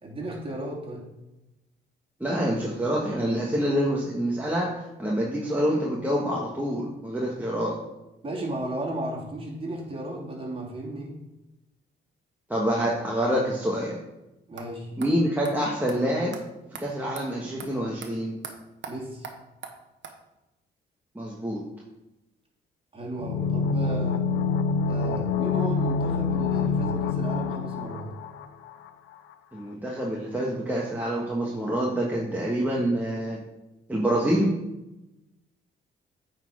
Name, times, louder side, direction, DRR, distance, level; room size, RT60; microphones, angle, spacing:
voice 1, 0.0-1.0 8.2-11.2 14.5-14.9 18.8-19.3 22.9-24.3 24.9-28.1, right 1 dB, 25° right, -3 dB, 2.9 m, -34 dB
voice 2, 2.2-7.8 12.5-14.0 15.0-16.4 16.8-18.4 21.1-21.6 29.5-33.4 33.9-34.5, equal, 10° right, -4 dB, 1.4 m, -26 dB
sound 1, 14.6-14.7 15.0-15.1 15.4-15.6 15.9-16.0 16.3-16.4 16.7-16.8 17.2-17.3 17.6-17.7 18.0-18.1 18.4-18.5 18.8-18.9 19.2-19.3 19.6-19.7 20.0-20.1, right 7 dB, 65° right, 1.2 m, -39 dB
sound 2, 23.2-28.9 29.1-29.2, left 5 dB, 85° left, 0.5 m, -26 dB
8.8 x 4.3 x 5.0 m, 0.95 s
cardioid pair, 90°, 20 cm